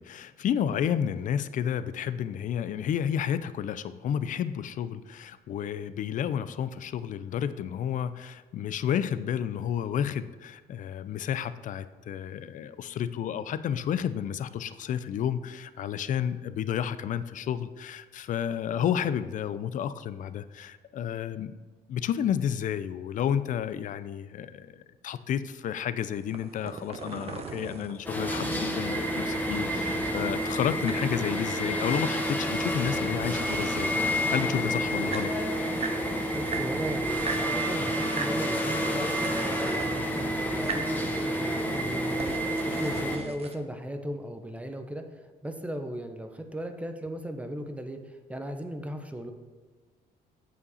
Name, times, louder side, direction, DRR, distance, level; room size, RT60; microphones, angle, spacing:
voice 1, 0.0-21.6 21.9-33.9 34.3-35.3, left 9 dB, 50° left, 14 dB, 0.5 m, -31 dB
sound 1, 26.2-28.7 30.5-32.6 32.8-34.1 34.7-34.8 34.9-36.0 36.4-37.5 38.0-38.4 38.7-40.0 40.5-40.9 41.4-43.6, right 5 dB, 35° right, 0.9 m, -39 dB
sound 2, 28.0-43.2, equal, 10° left, 1.3 m, -29 dB
voice 2, 36.3-49.3, right 1 dB, 10° right, 6 dB, 0.8 m, -37 dB
8.4 x 7.1 x 4.2 m, 1.4 s
cardioid pair, 110°, 17 cm